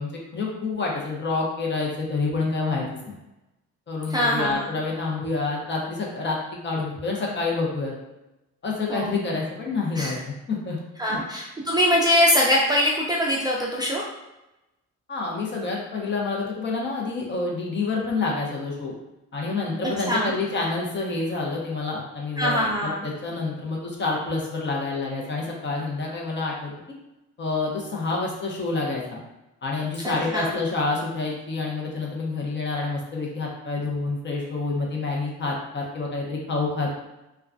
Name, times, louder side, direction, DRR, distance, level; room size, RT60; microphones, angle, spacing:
voice 1, 0.0-3.2 3.9-7.9 8.6-11.2 15.1-18.9 19.3-26.7 27.4-29.2 29.6-37.1, left 3 dB, 40° left, -2 dB, 0.7 m, -28 dB
voice 2, 4.1-4.7 8.9-9.1 10.0-10.2 11.0-14.0 20.1-20.3 22.4-23.0 30.0-30.5, equal, 15° right, -4 dB, 0.4 m, -22 dB
2.3 x 2.2 x 2.5 m, 0.97 s
cardioid pair, 90°, 30 cm